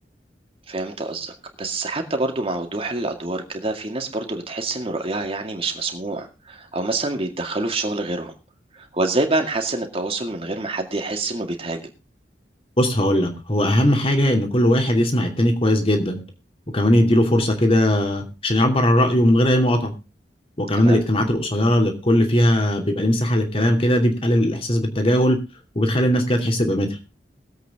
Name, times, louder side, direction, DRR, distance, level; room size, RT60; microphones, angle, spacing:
voice 1, 0.7-8.3 8.7-11.9 20.7-21.0, right 2 dB, 30° right, 4 dB, 2.2 m, -26 dB
voice 2, 12.8-16.2 16.7-19.9 20.6-25.4 25.8-26.9, equal, 30° left, 4 dB, 2.7 m, -19 dB
21.0 x 8.1 x 3.6 m, 0.29 s
head